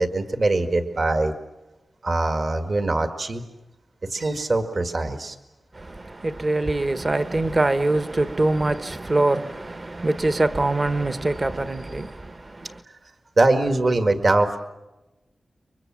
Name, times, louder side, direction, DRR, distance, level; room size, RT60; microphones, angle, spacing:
voice 1, 0.0-1.3 2.0-3.4 4.1-5.4 13.4-14.6, right 2 dB, 50° right, 1.8 m, -22 dB
voice 2, 5.7-12.8, right 2 dB, 30° right, 1.1 m, -24 dB
29.5 x 24.5 x 7.5 m
wide cardioid pair, 110°, 0 cm